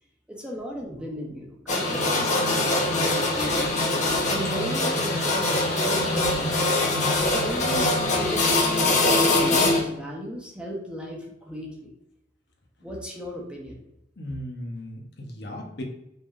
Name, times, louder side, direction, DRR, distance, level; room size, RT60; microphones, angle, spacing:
voice 1, 0.3-3.7 4.3-6.8 7.3-11.9 12.8-13.8, equal, 5° right, -2 dB, 1.0 m, -36 dB
sound 1, 1.7-9.8, left 2 dB, 40° left, 1.0 m, -23 dB
voice 2, 14.2-15.8, left 1 dB, 65° left, 1 dB, 1.0 m, -36 dB
5.5 x 3.6 x 2.5 m, 0.83 s
head